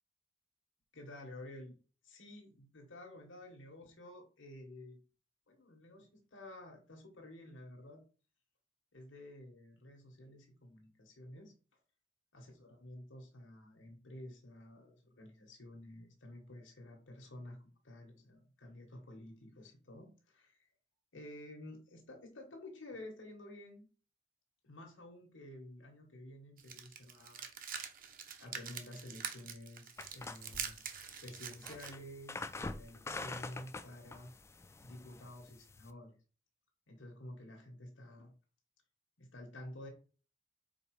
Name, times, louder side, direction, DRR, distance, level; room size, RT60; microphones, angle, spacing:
voice 1, 0.9-1.8 2.0-5.0 5.5-8.0 8.9-11.5 12.3-17.6 17.8-20.7 21.1-23.9 24.6-27.4 28.4-30.8 31.2-34.3 34.8-36.1 36.9-38.3 39.2-39.9, left 1 dB, 80° left, 1 dB, 1.5 m, -51 dB
sound 1, 26.6-31.9, right 7 dB, 50° right, 0.9 m, -45 dB
sound 2, 30.0-35.9, left 3 dB, 15° left, 0.3 m, -46 dB
5.0 x 4.0 x 4.8 m, 0.37 s
head